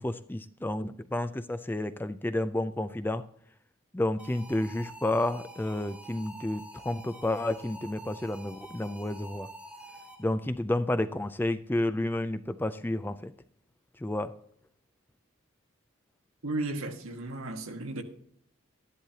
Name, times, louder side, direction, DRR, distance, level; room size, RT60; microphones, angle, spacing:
voice 1, 0.0-3.3 3.9-9.5 10.2-13.3 14.0-14.4, left 1 dB, 10° left, 0.3 m, -31 dB
sound 1, 4.2-10.5, right 1 dB, 5° right, 1.1 m, -47 dB
voice 2, 16.4-18.0, right 2 dB, 80° right, 1.5 m, -34 dB
13.0 x 11.0 x 2.8 m
head